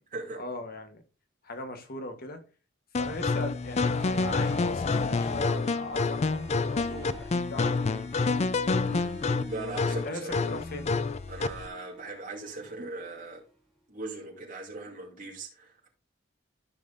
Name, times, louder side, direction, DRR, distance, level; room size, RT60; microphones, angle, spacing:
voice 1, 0.4-1.0 1.4-2.4 2.9-8.0 9.9-10.9, left 2 dB, 50° left, 1.2 m, -39 dB
sound 1, 2.9-11.7, left 4 dB, 35° left, 0.4 m, -28 dB
Harp, 3.7-3.8 4.0-13.5, right 1 dB, ahead, 2.7 m, -48 dB
voice 2, 8.8-9.1 9.5-10.4 11.3-13.4 13.9-15.9, right 2 dB, 45° right, 2.6 m, -39 dB
13.5 x 5.9 x 2.6 m
head